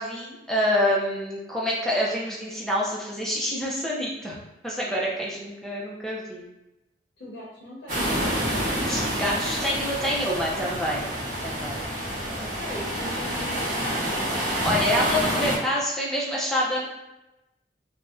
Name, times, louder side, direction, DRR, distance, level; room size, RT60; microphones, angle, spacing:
voice 1, 0.0-4.4 4.6-6.5 8.9-11.1 11.4-11.8 14.4-16.9, equal, ahead, -5 dB, 0.5 m, -27 dB
voice 2, 7.2-8.7 12.0-14.1, equal, 70° left, -6 dB, 0.8 m, -40 dB
sound 1, 7.9-15.6, equal, 45° right, 0.9 m, -28 dB
2.5 x 2.1 x 3.5 m, 0.96 s
head